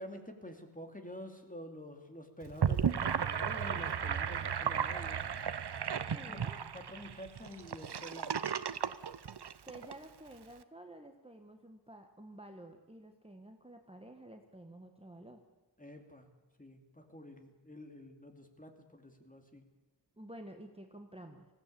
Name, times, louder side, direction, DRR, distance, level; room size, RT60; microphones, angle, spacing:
voice 1, 0.0-5.2 6.1-6.5 6.7-8.4 15.8-16.3 16.6-19.6, left 1 dB, 20° left, 5 dB, 2.6 m, -48 dB
Gurgling / Sink (filling or washing), 2.4-9.9, right 7 dB, 65° right, 0.8 m, -34 dB
voice 2, 6.1-6.6 9.7-15.4 20.2-21.5, right 1 dB, 15° right, 4 dB, 1.4 m, -51 dB
19.5 x 16.0 x 8.6 m, 1.1 s
wide cardioid pair, 75°, 43 cm